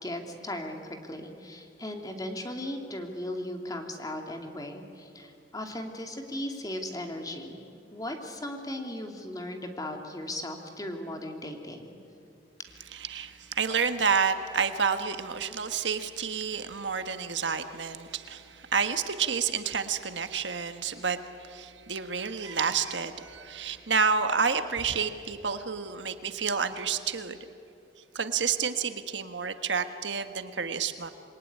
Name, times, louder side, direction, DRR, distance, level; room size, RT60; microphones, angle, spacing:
voice 1, 0.0-7.6 7.9-12.0, left 1 dB, 20° left, 4 dB, 2.6 m, -37 dB
voice 2, 12.9-27.4 28.1-31.1, right 6 dB, 75° right, 9 dB, 1.5 m, -29 dB
27.0 x 22.5 x 9.9 m, 2.5 s
head